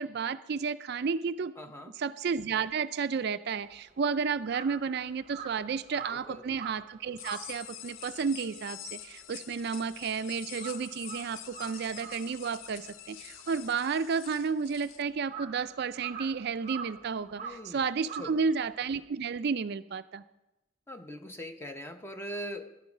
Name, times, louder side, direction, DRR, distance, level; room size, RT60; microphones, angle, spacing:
voice 1, 0.0-1.5 2.0-20.2, right 5 dB, 50° right, 12 dB, 0.4 m, -32 dB
voice 2, 1.6-2.0 6.1-6.4 17.4-17.8 18.2-18.4 20.9-22.8, equal, 10° left, 7 dB, 0.7 m, -41 dB
Crow, 3.6-10.1 10.4-19.0, right 6 dB, 30° right, 0.8 m, -46 dB
sound 1, 7.2-15.0, left 12 dB, 70° left, 0.5 m, -46 dB
13.5 x 10.5 x 6.0 m, 0.96 s
head